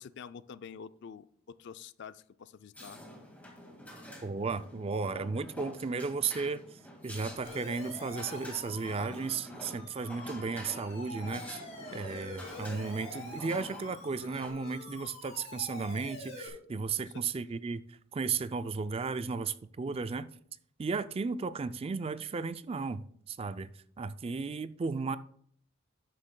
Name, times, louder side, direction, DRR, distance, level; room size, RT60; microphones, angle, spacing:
voice 1, 0.0-3.0 17.0-17.5, left 6 dB, 55° left, 0.4 m, -48 dB
sound 1, 2.7-14.5, equal, 10° left, 1.9 m, -48 dB
voice 2, 4.2-11.6 11.9-20.3 20.8-25.2, right 4 dB, 30° right, 0.3 m, -35 dB
Siren, 7.4-16.5, left 2 dB, 35° left, 3.1 m, -46 dB
11.5 x 9.8 x 2.2 m
head